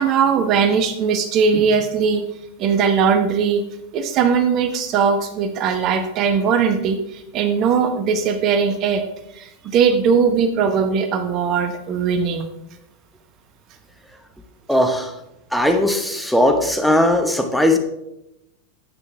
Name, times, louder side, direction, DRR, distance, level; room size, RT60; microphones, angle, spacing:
voice 1, 0.0-2.3 2.6-3.6 3.9-9.0 9.3-12.5, right 6 dB, 35° right, 8 dB, 0.8 m, -19 dB
voice 2, 14.7-15.1 15.5-17.8, left 1 dB, ahead, 4 dB, 1.0 m, -18 dB
10.5 x 8.4 x 3.4 m, 0.87 s
figure-of-eight pair, 90°, 0 cm